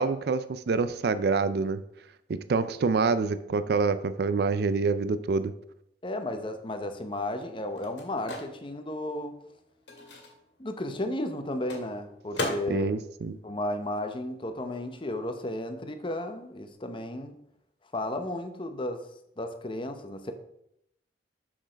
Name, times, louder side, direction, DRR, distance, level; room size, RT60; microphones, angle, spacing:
voice 1, 0.0-1.8 2.3-5.5 12.7-13.4, right 4 dB, 60° right, 13 dB, 0.4 m, -26 dB
voice 2, 6.0-9.3 10.6-12.9 13.4-17.4 17.9-19.0 19.4-20.3, left 1 dB, 30° left, 7 dB, 0.8 m, -33 dB
Microwave oven, 6.4-14.6 14.8-16.7, left 2 dB, 75° left, 1.9 m, -41 dB
6.3 x 6.2 x 5.1 m, 0.77 s
head